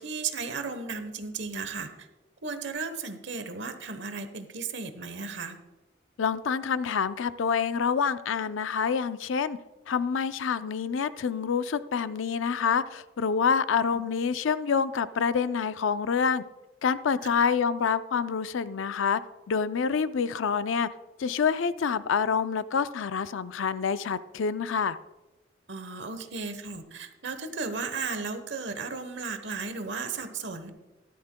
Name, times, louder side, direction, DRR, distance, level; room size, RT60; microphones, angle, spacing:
voice 1, 0.0-2.1 2.4-5.6 17.4-17.5 25.7-30.7, right 4 dB, 70° right, 9 dB, 1.0 m, -35 dB
voice 2, 6.2-9.6 9.9-16.4 16.8-19.2 19.5-20.9 21.2-25.0, left 6 dB, 85° left, 14 dB, 0.4 m, -27 dB
14.5 x 12.5 x 2.2 m, 1.1 s
head